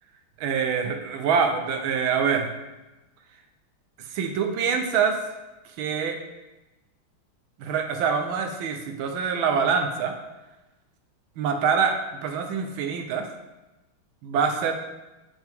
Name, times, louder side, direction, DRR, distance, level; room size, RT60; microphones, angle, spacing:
voice 1, 0.4-2.5 4.1-5.2 5.8-6.2 7.6-10.1 11.4-13.3 14.2-14.7, right 6 dB, 80° right, 5 dB, 1.5 m, -25 dB
6.0 x 5.4 x 3.5 m, 1.0 s
omnidirectional pair, 2.3 m